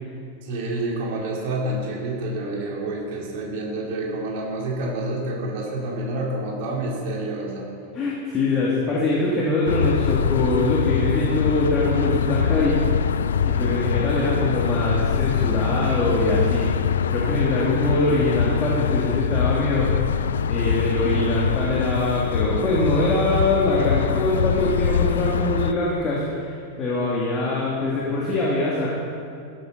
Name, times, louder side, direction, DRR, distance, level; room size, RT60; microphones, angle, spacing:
voice 1, 0.4-7.7, right 2 dB, 50° right, -3 dB, 3.7 m, -28 dB
voice 2, 7.9-12.8 13.4-16.7 17.1-20.1 20.4-28.9, left 2 dB, 25° left, -5 dB, 2.7 m, -23 dB
sound 1, 9.7-25.7, left 7 dB, 65° left, 0.4 m, -23 dB
15.5 x 13.5 x 4.2 m, 2.4 s
figure-of-eight pair, 90°, 0 cm